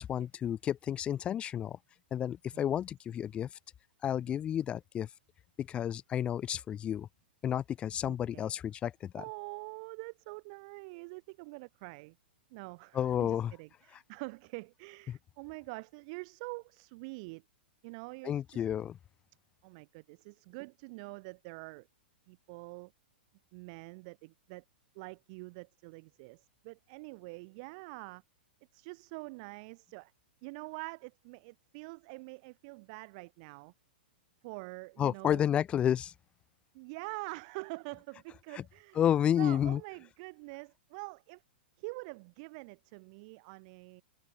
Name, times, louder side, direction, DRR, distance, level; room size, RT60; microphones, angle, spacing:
voice 1, 0.0-1.8 2.1-3.5 4.0-5.1 5.6-7.1 7.4-9.2 12.9-13.5 15.1-15.2 18.2-19.0 35.0-36.1 39.0-39.8, left 10 dB, 20° left, 0.5 m, -31 dB
voice 2, 8.0-8.5 9.1-12.2 12.5-17.4 17.8-18.6 19.6-21.9 22.3-22.9 23.5-24.6 24.9-28.2 28.7-30.1 30.4-33.7 34.4-35.5 36.7-39.1 39.4-41.4 41.8-44.0, right 29 dB, 45° right, 0.7 m, -45 dB
hypercardioid pair, 140°, 6 cm